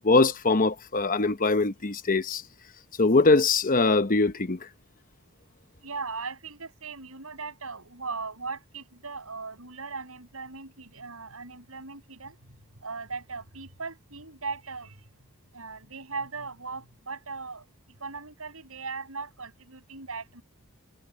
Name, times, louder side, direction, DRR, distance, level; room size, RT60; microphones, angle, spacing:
voice 1, 0.0-2.4 3.0-4.6, left 3 dB, 40° left, 0.9 m, -22 dB
voice 2, 5.8-15.1 15.5-17.7 18.0-20.4, right 4 dB, 75° right, 6.6 m, -38 dB
head